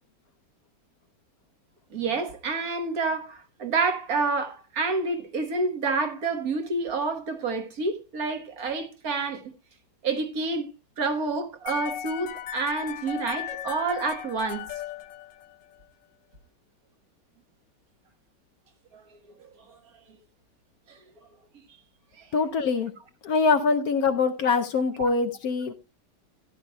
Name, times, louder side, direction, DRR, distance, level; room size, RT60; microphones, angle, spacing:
voice 1, 1.9-9.5 10.0-10.7 11.0-14.7 18.9-19.0 20.9-21.0 22.2-22.3 25.0-25.1, right 3 dB, 55° right, 1.7 m, -28 dB
sound 1, 11.7-15.8, left 11 dB, 80° left, 1.4 m, -37 dB
voice 2, 22.3-22.9 23.2-25.7, left 4 dB, 65° left, 1.1 m, -24 dB
15.0 x 11.0 x 2.2 m
omnidirectional pair, 1.9 m